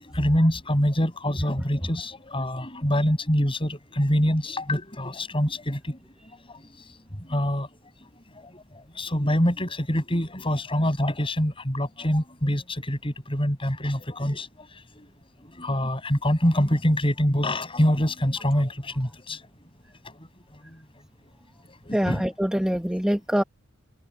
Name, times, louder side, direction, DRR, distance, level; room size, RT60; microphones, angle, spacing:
voice 1, 0.1-6.0 7.3-7.7 9.0-14.5 15.6-19.4 21.9-22.2, equal, 25° left, 7.3 m, -25 dB
voice 2, 21.9-23.4, equal, 5° right, 1.2 m, -24 dB
head